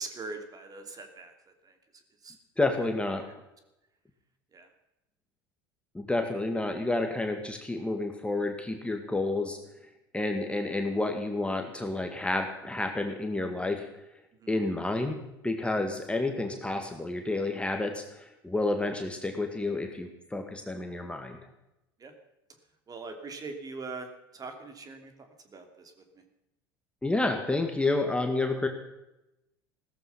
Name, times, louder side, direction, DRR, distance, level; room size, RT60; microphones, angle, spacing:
voice 1, 0.0-1.3 1.6-2.4 3.2-3.3 4.5-4.7 14.4-14.5 22.0-22.1 22.9-26.2, right 3 dB, 30° right, 6 dB, 2.9 m, -42 dB
voice 2, 2.6-3.2 5.9-9.6 10.1-13.9 14.5-15.2 15.4-21.4 27.0-28.7, left 2 dB, 10° left, 4 dB, 2.0 m, -30 dB
17.0 x 14.0 x 5.8 m, 0.91 s
figure-of-eight pair, 70°, 13 cm